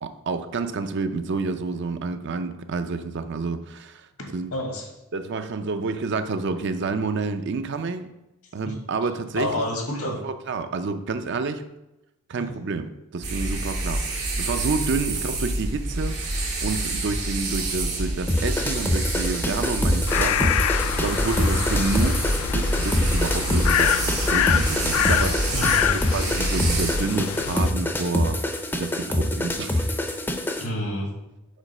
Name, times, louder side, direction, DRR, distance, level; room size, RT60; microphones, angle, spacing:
voice 1, 0.0-4.5 5.1-8.1 8.5-11.6 12.3-25.6 25.9-28.4 28.8-30.0, right 4 dB, 55° right, 9 dB, 0.5 m, -29 dB
voice 2, 4.5-4.9 8.6-8.7 9.3-10.2 12.3-12.5 15.2-15.4 21.2-21.6 25.5-25.9 30.6-31.1, left 1 dB, 90° left, 1 dB, 1.6 m, -29 dB
sound 1, 13.2-27.0, right 2 dB, 90° right, 1.8 m, -27 dB
sound 2, 18.3-30.7, left 1 dB, 10° left, 0.5 m, -26 dB
sound 3, 20.1-27.7, left 9 dB, 75° left, 0.3 m, -26 dB
5.1 x 4.0 x 5.4 m, 0.94 s
head